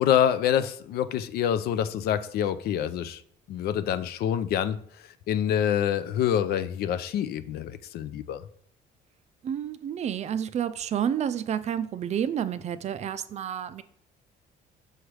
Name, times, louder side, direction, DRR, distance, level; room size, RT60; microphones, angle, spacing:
voice 1, 0.0-3.2 3.5-4.8 5.3-8.4, left 9 dB, 70° left, 0.4 m, -26 dB
voice 2, 9.4-13.8, right 9 dB, 40° right, 0.4 m, -30 dB
6.2 x 3.3 x 4.7 m
cardioid pair, 110°, 17 cm